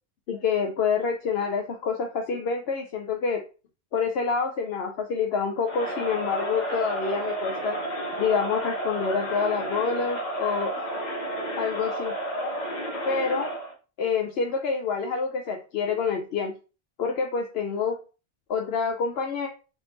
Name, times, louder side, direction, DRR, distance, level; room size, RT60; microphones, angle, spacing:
voice 1, 0.3-3.4 3.9-7.8 8.2-10.7 11.6-12.1 12.4-12.6 13.0-13.5 14.0-16.5 17.0-18.0 18.5-19.5, left 5 dB, 75° left, 4 dB, 0.9 m, -27 dB
Crowd, 5.6-13.8, right 1 dB, 45° left, 1.1 m, -31 dB
3.7 x 3.6 x 3.8 m, 0.34 s
omnidirectional pair, 1.0 m